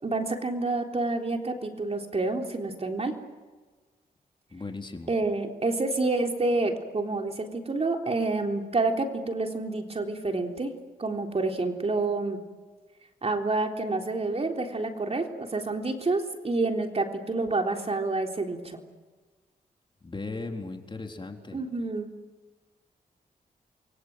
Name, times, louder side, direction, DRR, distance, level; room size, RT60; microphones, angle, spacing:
voice 1, 0.0-3.1 5.1-10.7 11.0-12.4 13.2-18.8 21.5-22.1, right 3 dB, 40° right, 3 dB, 3.7 m, -28 dB
voice 2, 4.5-5.1 20.0-21.6, left 3 dB, 30° left, 3 dB, 3.9 m, -37 dB
29.5 x 23.5 x 7.9 m, 1.4 s
cardioid pair, 65°, 16 cm